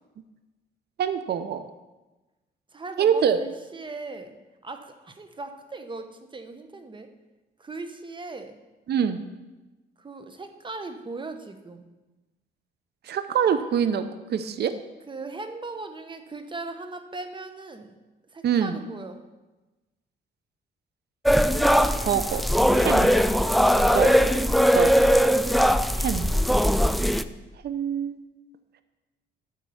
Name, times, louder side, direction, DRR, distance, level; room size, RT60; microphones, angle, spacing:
voice 1, 1.0-1.7 3.0-3.4 8.9-9.2 13.0-14.8 18.4-18.8 22.0-22.5 22.7-23.1 23.9-24.2 24.7-25.0 26.0-26.3 27.6-28.2, right 8 dB, 55° right, 11 dB, 0.7 m, -25 dB
voice 2, 2.7-4.4 4.6-7.1 7.6-8.6 10.0-11.9 15.1-17.9 18.3-19.2, right 3 dB, 25° right, 7 dB, 1.1 m, -38 dB
sound 1, 21.3-27.2, equal, ahead, 0.4 m, -20 dB
12.0 x 4.6 x 7.0 m, 1.1 s
cardioid pair, 90°, 20 cm